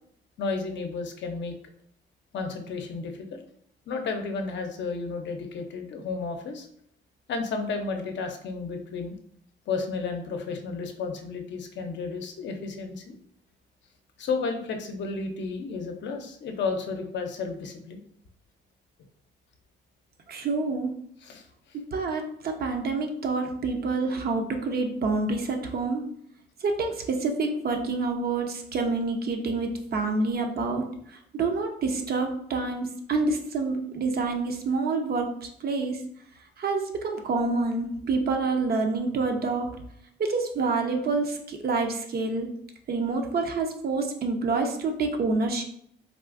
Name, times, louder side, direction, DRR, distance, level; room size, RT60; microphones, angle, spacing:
voice 1, 0.4-1.5 2.3-3.4 3.9-6.7 7.3-9.1 9.7-13.2 14.2-18.0 21.2-21.5, left 4 dB, 65° left, 4 dB, 0.6 m, -32 dB
voice 2, 20.3-20.9 21.9-26.0 26.6-30.9 31.3-36.0 36.6-39.7 40.2-42.5 42.9-45.6, right 3 dB, 50° right, 4 dB, 0.6 m, -27 dB
3.5 x 2.5 x 2.4 m, 0.68 s
cardioid pair, 90°, 20 cm